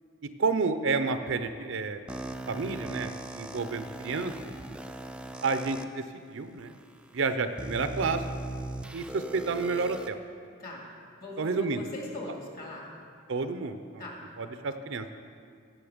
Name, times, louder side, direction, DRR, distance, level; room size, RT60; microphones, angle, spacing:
voice 1, 0.2-2.1 2.5-4.5 5.4-6.0 6.3-6.8 7.1-8.2 8.9-10.2 11.4-11.8 13.3-14.0 14.4-15.1, right 4 dB, 65° right, 10 dB, 0.6 m, -30 dB
sound 1, 2.1-5.8 6.6-6.7 7.6-10.1, right 2 dB, 5° right, 0.3 m, -39 dB
voice 2, 11.2-12.9 14.0-14.2, left 2 dB, 45° left, -2 dB, 2.4 m, -40 dB
16.5 x 6.5 x 5.1 m, 2.2 s
head